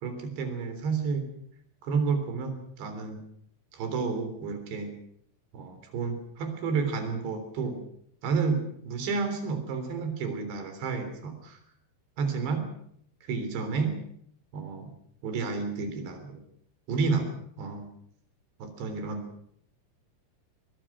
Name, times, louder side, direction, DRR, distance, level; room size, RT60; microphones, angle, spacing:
voice 1, 0.0-1.3 1.8-3.2 3.7-4.9 5.5-7.8 8.2-11.6 12.2-12.7 13.3-14.0 14.5-14.9 15.2-16.4 16.9-17.3 17.6-17.9 18.6-19.3, right 5 dB, 65° right, 7 dB, 5.6 m, -30 dB
22.5 x 22.5 x 6.1 m, 0.67 s
omnidirectional pair, 5.6 m